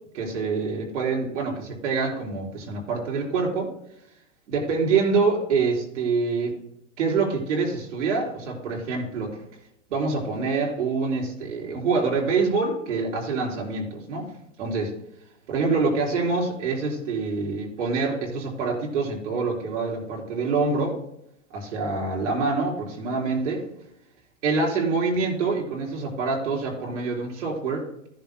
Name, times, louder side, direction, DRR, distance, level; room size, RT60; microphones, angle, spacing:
voice 1, 0.1-3.7 4.5-6.6 7.0-9.4 9.9-14.3 14.6-14.9 15.5-21.0 21.5-23.7 24.4-27.9, right 4 dB, 65° right, -2 dB, 4.1 m, -26 dB
14.5 x 10.5 x 2.2 m, 0.76 s
hypercardioid pair, 155°, 39 cm